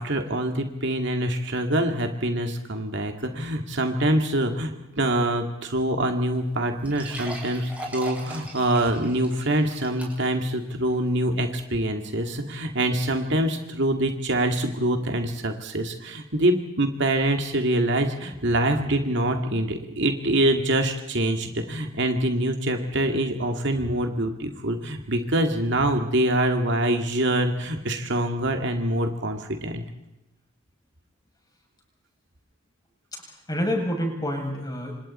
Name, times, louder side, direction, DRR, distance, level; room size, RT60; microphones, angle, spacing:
voice 1, 0.0-29.8, right 1 dB, 60° right, 4 dB, 2.3 m, -25 dB
sound 1, 6.0-6.1 6.3-6.4 6.8-10.4 10.9-11.0 11.6-11.7, right 1 dB, 5° right, 6.1 m, -39 dB
voice 2, 33.1-34.9, equal, 20° left, 0 dB, 7.8 m, -28 dB
29.0 x 26.5 x 4.4 m, 0.95 s
head